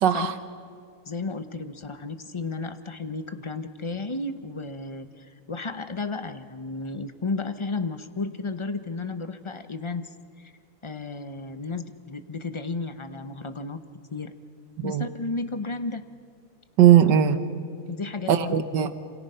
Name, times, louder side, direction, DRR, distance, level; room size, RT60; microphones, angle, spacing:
voice 1, 0.0-0.3 14.8-15.1 16.8-17.4 18.3-18.9, right 10 dB, 80° right, 11 dB, 1.8 m, -18 dB
voice 2, 1.1-10.1 10.4-10.5 10.8-13.8 14.1-14.3 14.8-16.0 17.9-18.6, left 3 dB, 35° left, 9 dB, 0.4 m, -33 dB
27.0 x 27.0 x 5.6 m, 2.4 s
omnidirectional pair, 1.9 m